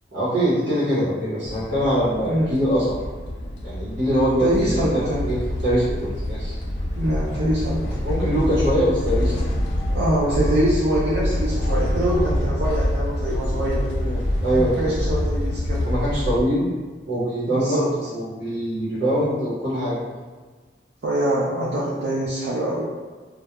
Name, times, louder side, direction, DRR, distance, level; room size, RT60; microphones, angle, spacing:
voice 1, 0.1-3.0 3.6-6.6 8.0-9.4 13.9-14.9 15.8-16.7 17.1-20.0, equal, 85° right, -10 dB, 0.8 m, -23 dB
sound 1, 1.4-16.4, left 1 dB, 75° left, 0.4 m, -26 dB
voice 2, 2.2-2.6 4.4-5.3 6.9-8.0 9.9-13.9 14.5-15.9 17.5-17.9 21.0-22.9, right 1 dB, 70° right, -8 dB, 0.4 m, -24 dB
2.2 x 2.1 x 2.8 m, 1.4 s
head